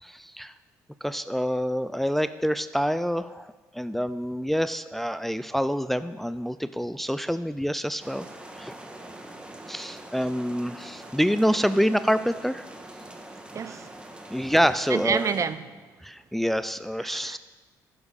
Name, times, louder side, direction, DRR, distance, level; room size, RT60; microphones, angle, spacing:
voice 1, 0.0-0.5 1.0-8.3 8.5-8.7 9.7-12.7 14.3-15.3 16.0-17.4, equal, 5° left, 0.5 m, -27 dB
sound 1, 8.0-15.5, right 1 dB, 15° right, 1.7 m, -43 dB
voice 2, 13.5-14.1 14.9-15.9 17.0-17.4, right 6 dB, 45° right, 0.7 m, -29 dB
11.0 x 10.0 x 6.6 m
supercardioid pair, 70°, 8 cm